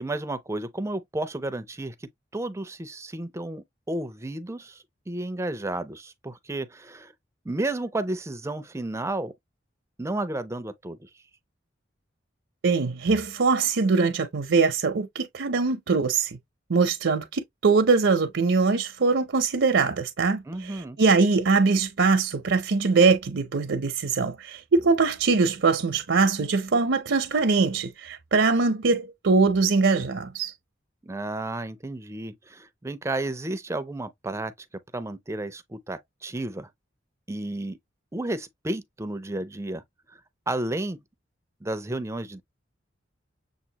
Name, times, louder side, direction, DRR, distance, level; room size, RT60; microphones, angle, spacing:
voice 1, 0.0-1.9 2.3-7.1 7.5-9.3 10.0-11.1 20.5-21.0 31.0-34.5 34.9-36.7 37.3-37.8 38.1-39.8 40.5-41.0 41.6-42.4, right 2 dB, 15° right, 0.5 m, -32 dB
voice 2, 12.6-16.4 16.7-30.5, right 4 dB, 75° right, 0.6 m, -22 dB
7.2 x 2.5 x 2.8 m
head